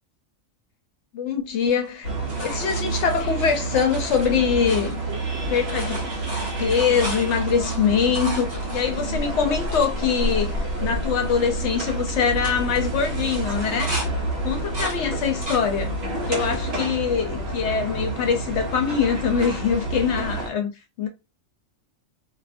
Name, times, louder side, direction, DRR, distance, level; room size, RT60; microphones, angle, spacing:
voice 1, 1.1-2.1 2.4-5.0 5.5-6.0 6.6-14.0 14.4-15.9 16.3-20.7 21.0-21.1, left 6 dB, 70° left, 0.9 m, -23 dB
sound 1, 1.6-5.3 5.5-9.9 10.5-10.6 10.8-11.2 11.5-11.9 12.3-14.1 14.5-15.7 16.1-16.7 17.3-18.0 19.6-19.7, equal, 35° right, 1.1 m, -36 dB
sound 2, 2.0-20.5, right 2 dB, 55° right, 1.1 m, -29 dB
2.7 x 2.5 x 2.4 m
omnidirectional pair, 1.3 m